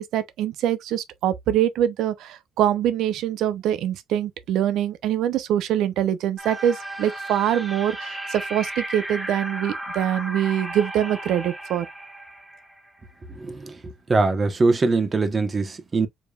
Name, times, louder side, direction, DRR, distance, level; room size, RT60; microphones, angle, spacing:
voice 1, 0.0-11.9, right 11 dB, 75° right, 0.7 m, -24 dB
sound 1, 6.4-13.2, right 1 dB, 5° right, 1.8 m, -34 dB
voice 2, 13.4-13.7 14.1-16.1, right 3 dB, 30° right, 1.2 m, -22 dB
5.1 x 3.3 x 2.4 m
cardioid pair, 85°, 0 cm